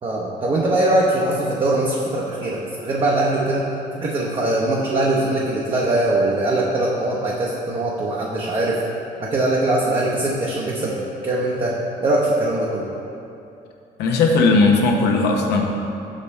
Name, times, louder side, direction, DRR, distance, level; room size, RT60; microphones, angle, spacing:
voice 1, 0.0-3.7 3.9-8.8 9.2-11.7 12.0-12.9, right 2 dB, 30° right, -4 dB, 0.7 m, -21 dB
voice 2, 14.0-15.6, left 3 dB, 75° left, 1 dB, 0.8 m, -17 dB
5.7 x 5.1 x 4.2 m, 2.8 s
cardioid pair, 110°, 17 cm